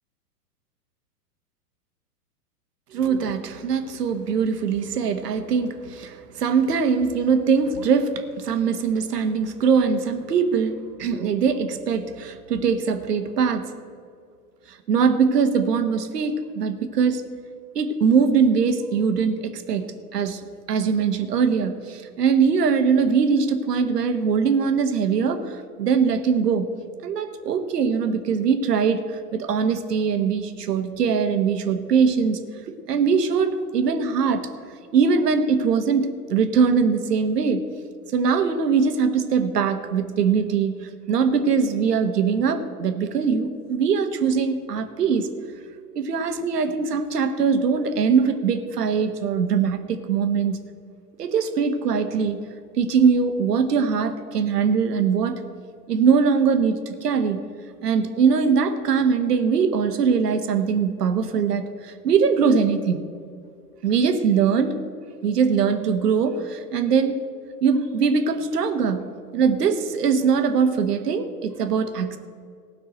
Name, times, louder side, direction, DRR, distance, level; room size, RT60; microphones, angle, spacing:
voice 1, 2.9-13.7 14.7-17.2 17.7-32.4 32.7-34.4 34.9-37.6 38.1-45.3 45.9-50.6 51.2-52.4 52.8-55.4 55.9-57.4 57.8-63.1 63.8-64.8 65.2-67.2 67.6-72.2, right 6 dB, 80° right, 8 dB, 1.3 m, -22 dB
16.0 x 5.9 x 7.9 m, 2.2 s
hypercardioid pair, 120°, 48 cm